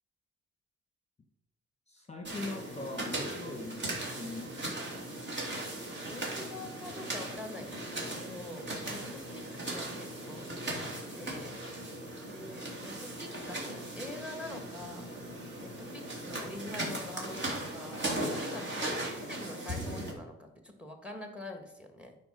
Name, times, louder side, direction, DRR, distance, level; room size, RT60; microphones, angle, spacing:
voice 1, 1.9-4.9, left 2 dB, 20° left, 4 dB, 1.2 m, -42 dB
sound 1, 2.2-20.1, right 1 dB, 35° right, 2.7 m, -38 dB
voice 2, 6.1-7.8 8.0-11.6 12.3-15.1 15.6-22.2, left 2 dB, 5° right, 5 dB, 1.6 m, -45 dB
9.4 x 4.4 x 6.6 m, 0.88 s
cardioid pair, 90°, 30 cm